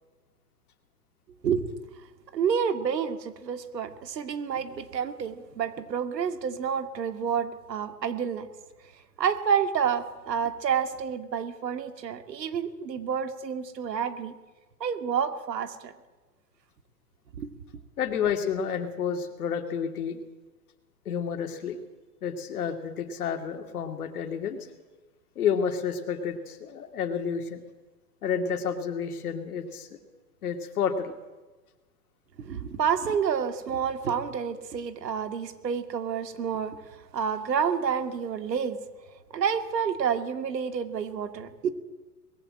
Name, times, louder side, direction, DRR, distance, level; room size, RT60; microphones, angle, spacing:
voice 1, 2.3-8.5 9.2-14.3 14.8-15.9 17.4-17.5 32.4-38.8 39.3-41.7, right 7 dB, 85° right, 8 dB, 2.5 m, -29 dB
voice 2, 18.0-20.2 21.1-21.8 22.2-24.6 25.4-27.6 28.2-29.9 30.4-31.1, left 7 dB, 65° left, 6 dB, 2.5 m, -30 dB
20.5 x 15.5 x 8.8 m, 1.2 s
hypercardioid pair, 175°, 48 cm